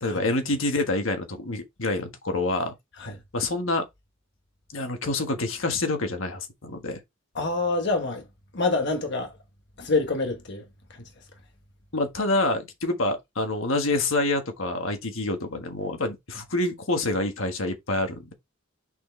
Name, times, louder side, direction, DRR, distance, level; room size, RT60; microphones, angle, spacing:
voice 1, 0.0-2.7 3.3-3.8 4.7-7.0 11.9-18.3, left 2 dB, 70° left, 1.5 m, -27 dB
voice 2, 7.3-8.2 8.5-9.3 9.8-10.6 10.9-11.0, left 3 dB, 55° left, 1.2 m, -26 dB
6.5 x 4.6 x 3.3 m
head